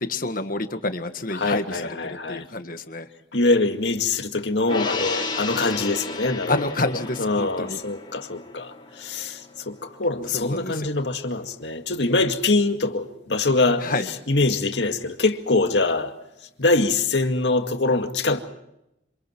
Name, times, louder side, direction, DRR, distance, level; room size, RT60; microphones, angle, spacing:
voice 1, 0.0-1.6 2.3-3.1 6.5-7.8 10.3-10.7 13.8-14.0, left 2 dB, 50° left, 1.7 m, -28 dB
voice 2, 1.3-2.5 3.3-16.2 16.6-18.4, left 3 dB, 85° left, 2.1 m, -24 dB
Gong, 4.7-11.3 11.6-11.8, left 4 dB, 30° left, 4.5 m, -34 dB
27.5 x 27.0 x 4.6 m
head